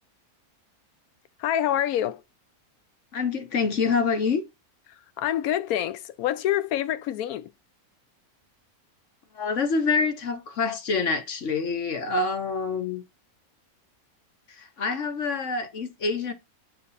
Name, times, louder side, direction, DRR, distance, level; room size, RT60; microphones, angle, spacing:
voice 1, 1.4-2.2 5.2-7.5, left 11 dB, 80° left, 1.0 m, -26 dB
voice 2, 3.1-4.4 9.3-13.0 14.5-16.3, left 4 dB, 55° left, 1.3 m, -26 dB
7.2 x 4.1 x 4.0 m
omnidirectional pair, 1.6 m